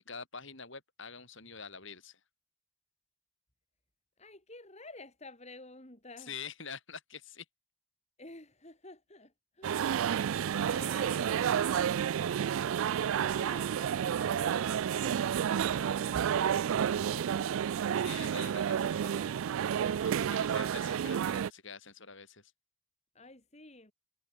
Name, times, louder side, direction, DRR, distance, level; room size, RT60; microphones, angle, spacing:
voice 1, 0.0-2.2 6.2-7.5 18.0-19.0 20.0-22.5, left 6 dB, 55° left, 6.2 m, -46 dB
voice 2, 4.2-6.3 8.2-10.3 10.6-12.5 13.0-17.5 17.8-19.4 23.1-23.9, left 2 dB, 30° left, 2.8 m, -51 dB
sound 1, 9.6-21.5, right 8 dB, 65° right, 0.3 m, -30 dB
head